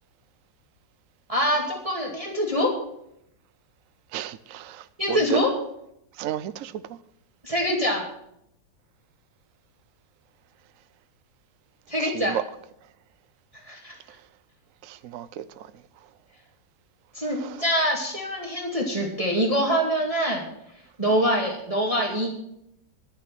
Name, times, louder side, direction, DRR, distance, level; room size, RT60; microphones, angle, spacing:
voice 1, 1.3-2.7 5.0-5.5 7.4-8.0 11.9-12.4 13.6-14.0 17.1-20.5 21.0-22.3, equal, 20° right, 2.3 m, -24 dB
voice 2, 4.1-4.8 5.1-5.4 6.2-6.7 12.1-12.4 14.9-15.4, right 11 dB, 65° right, 0.8 m, -31 dB
11.5 x 9.4 x 7.6 m
omnidirectional pair, 2.0 m